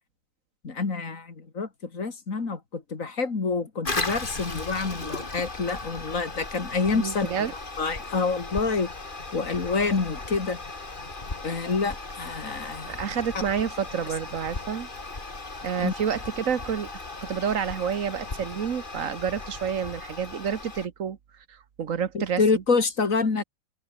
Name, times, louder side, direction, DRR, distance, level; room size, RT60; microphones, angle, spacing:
voice 1, 0.6-7.5 7.8-8.9 9.3-10.6 11.4-13.0 15.8-15.9 22.1-23.4, left 4 dB, 75° left, 2.9 m, -27 dB
Toilet flush, 3.8-20.9, left 3 dB, 40° left, 2.6 m, -37 dB
voice 2, 6.9-7.5 12.9-14.9 15.6-16.9 17.2-21.2 21.5-22.6, right 7 dB, 75° right, 1.6 m, -29 dB
omnidirectional pair, 1.4 m